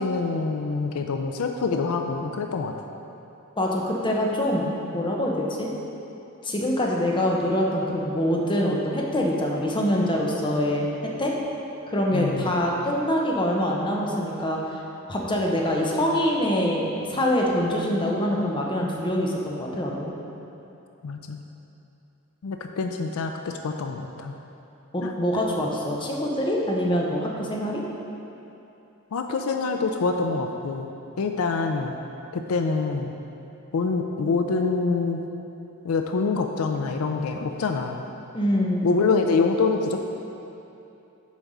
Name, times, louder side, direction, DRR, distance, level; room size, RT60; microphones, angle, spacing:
voice 1, 0.0-2.7 12.1-12.5 21.0-21.4 22.4-24.3 25.0-25.1 29.1-30.9 31.2-31.9 32.3-33.1 33.7-35.2 35.8-38.0 38.8-40.0, left 4 dB, 75° left, 4 dB, 0.4 m, -25 dB
voice 2, 3.6-5.7 6.4-10.9 11.2-11.3 11.9-14.8 15.1-20.1 24.9-27.8 38.3-38.9, equal, 25° left, -2 dB, 0.8 m, -24 dB
7.3 x 4.6 x 5.4 m, 2.8 s
head